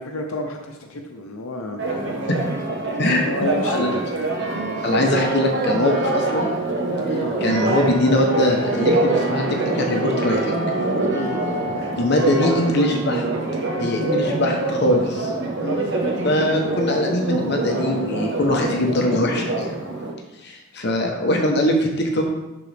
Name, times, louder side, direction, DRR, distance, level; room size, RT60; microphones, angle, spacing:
voice 1, 0.0-1.8 3.2-4.0 7.1-7.3 11.1-11.4 15.6-15.8, left 2 dB, 85° left, 3 dB, 0.7 m, -30 dB
Church bell, 1.8-20.1, right 2 dB, 55° right, 1.2 m, -24 dB
voice 2, 3.7-4.0 4.8-6.5 7.1-9.4 9.7-10.7 12.0-13.2 13.8-15.3 16.2-19.8 20.4-22.3, left 1 dB, 50° left, 1 dB, 0.9 m, -22 dB
11.5 x 3.9 x 3.4 m, 1.0 s
head